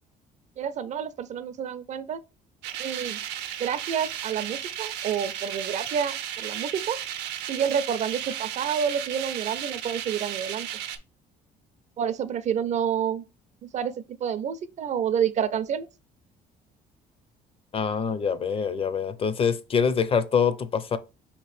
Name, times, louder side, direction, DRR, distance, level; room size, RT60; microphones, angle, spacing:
voice 1, 0.6-2.2 2.8-3.2 3.6-7.0 7.5-10.7 12.0-13.2 13.7-13.9 14.2-15.9, right 8 dB, 45° right, 0.4 m, -28 dB
sound 1, 2.6-11.0, right 10 dB, 90° right, 0.6 m, -34 dB
voice 2, 17.7-21.0, left 6 dB, 35° left, 0.5 m, -25 dB
5.0 x 2.9 x 3.1 m
cardioid pair, 110°, 17 cm